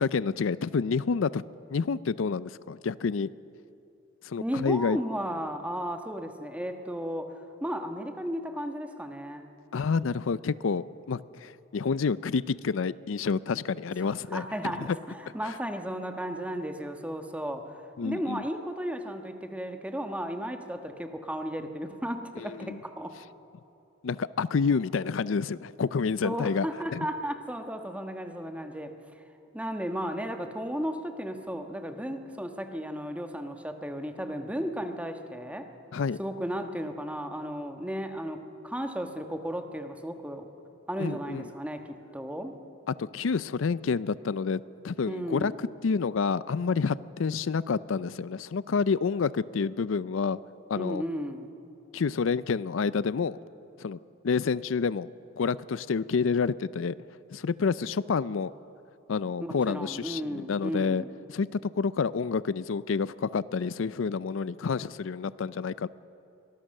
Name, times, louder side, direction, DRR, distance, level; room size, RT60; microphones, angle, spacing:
voice 1, 0.0-1.4 1.7-3.3 4.2-5.0 9.7-14.4 14.7-14.9 15.4-15.5 18.0-18.4 22.4-22.8 24.0-26.7 26.9-27.1 35.9-36.2 41.0-41.5 42.9-45.5 45.8-50.4 50.7-51.0 51.9-53.4 53.8-54.0 54.2-55.1 55.4-57.0 57.3-58.5 59.1-61.0 61.3-65.9, left 5 dB, 85° left, 17 dB, 0.5 m, -28 dB
voice 2, 4.4-7.3 7.6-9.5 14.0-23.2 26.2-28.9 29.5-35.7 36.2-40.5 40.9-42.5 45.1-45.6 50.8-51.5 59.4-61.1, equal, 5° right, 6 dB, 1.3 m, -34 dB
24.5 x 19.0 x 6.6 m, 2.8 s
head